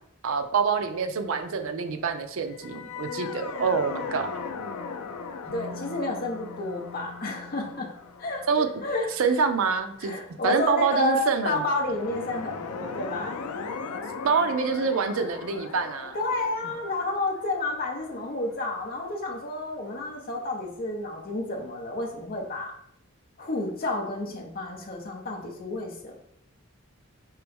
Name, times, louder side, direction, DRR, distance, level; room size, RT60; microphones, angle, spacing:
voice 1, 0.2-4.3 8.5-8.7 9.2-10.2 10.4-11.6 14.2-16.2, right 5 dB, 65° right, 7 dB, 0.4 m, -26 dB
sound 1, 2.5-9.8 11.6-19.4, left 5 dB, 85° left, 0.5 m, -39 dB
sound 2, 5.4-9.3, left 3 dB, 10° left, 1.3 m, -47 dB
voice 2, 5.5-7.9 8.2-9.1 10.0-13.4 16.1-22.7 23.4-26.2, left 2 dB, 40° left, 0 dB, 0.7 m, -30 dB
4.6 x 2.9 x 3.4 m, 0.74 s
head